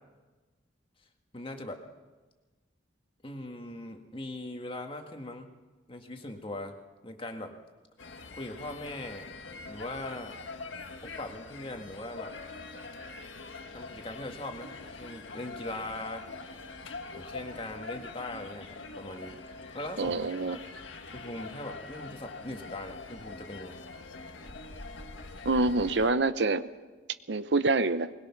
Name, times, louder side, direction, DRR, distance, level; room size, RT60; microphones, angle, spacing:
voice 1, 1.3-1.8 3.2-5.5 5.9-6.8 7.0-7.5 8.3-9.3 9.7-10.4 11.0-12.4 13.7-16.3 17.1-19.4 19.7-20.1 20.5-20.6 21.1-23.8, left 1 dB, 30° left, 4 dB, 1.7 m, -40 dB
sound 1, 8.0-26.1, left 3 dB, 85° left, 1.6 m, -44 dB
voice 2, 20.0-20.6 25.4-26.6 27.3-28.1, right 3 dB, 65° right, 12 dB, 0.7 m, -26 dB
21.0 x 21.0 x 5.9 m, 1.2 s
head